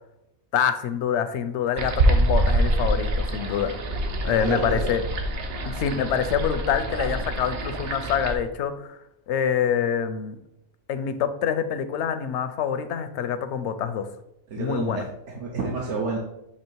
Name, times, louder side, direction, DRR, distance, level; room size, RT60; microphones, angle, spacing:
voice 1, 0.5-3.8 4.2-5.0 5.7-9.0 9.3-10.4 10.9-14.1 14.6-15.1, left 8 dB, 80° left, 10 dB, 0.9 m, -26 dB
sound 1, 1.8-8.3, right 1 dB, 60° right, 0.9 m, -25 dB
voice 2, 4.2-4.8 14.5-16.2, right 3 dB, 85° right, -1 dB, 1.2 m, -30 dB
7.2 x 2.9 x 4.5 m, 0.83 s
omnidirectional pair, 1.2 m